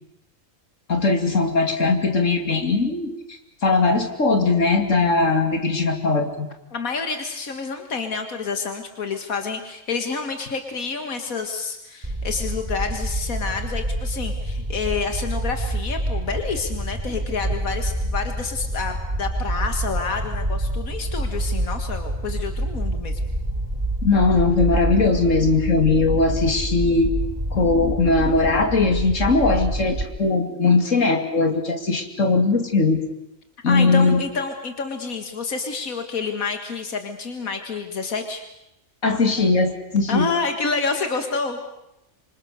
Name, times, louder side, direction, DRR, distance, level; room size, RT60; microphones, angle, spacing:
voice 1, 0.9-6.5 24.0-27.1 27.5-33.0 33.6-34.2 39.0-40.3, left 3 dB, 65° left, 5 dB, 3.0 m, -20 dB
voice 2, 6.7-23.2 33.7-38.4 40.1-41.6, left 4 dB, 90° left, 6 dB, 2.3 m, -28 dB
sound 1, 12.0-30.0, right 1 dB, 25° right, 3.5 m, -27 dB
27.0 x 25.5 x 6.7 m, 0.86 s
omnidirectional pair, 1.4 m